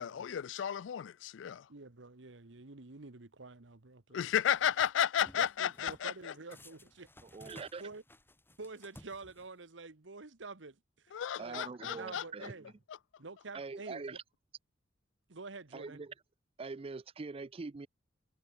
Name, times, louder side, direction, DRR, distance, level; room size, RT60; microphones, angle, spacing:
voice 1, 0.0-1.6 4.1-6.1 11.1-12.2, left 9 dB, 80° left, 0.4 m, -33 dB
voice 2, 1.7-4.3 5.4-7.1 7.4-7.5 7.8-8.0 8.6-10.8 11.0-11.6 11.9-12.7 13.2-14.0 15.3-16.0, right 3 dB, 85° right, 1.4 m, -48 dB
sound 1, 4.3-4.9 5.3-6.1 6.5-9.7, left 1 dB, 10° left, 7.7 m, -57 dB
voice 3, 7.2-7.8 11.4-12.5 13.5-14.2 15.7-16.1 16.6-17.9, right 4 dB, 30° right, 0.5 m, -43 dB
head